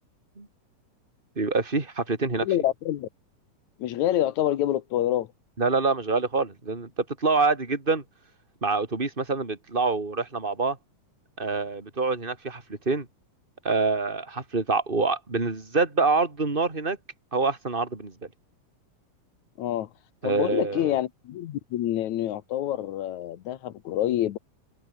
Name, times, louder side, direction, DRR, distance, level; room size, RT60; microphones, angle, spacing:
voice 1, 1.4-2.5 5.6-6.9 7.2-8.0 8.6-10.8 11.4-13.1 13.6-17.0 17.3-18.1 20.2-20.9, right 3 dB, 15° right, 3.4 m, -26 dB
voice 2, 2.4-3.1 3.8-5.3 19.6-19.9 20.2-24.4, left 12 dB, 70° left, 2.3 m, -27 dB
open air
omnidirectional pair, 3.8 m